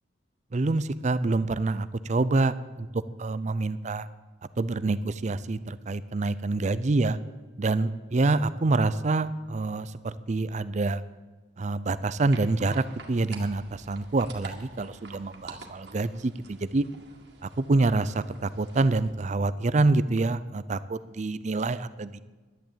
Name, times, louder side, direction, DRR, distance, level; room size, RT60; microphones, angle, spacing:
voice 1, 0.5-2.9 3.2-4.1 4.6-7.2 7.6-11.0 11.6-16.8 17.4-22.2, right 3 dB, 40° right, 15 dB, 0.5 m, -26 dB
sound 1, 12.3-19.1, right 3 dB, 65° right, 2.1 m, -47 dB
11.0 x 11.0 x 8.7 m, 1.3 s
head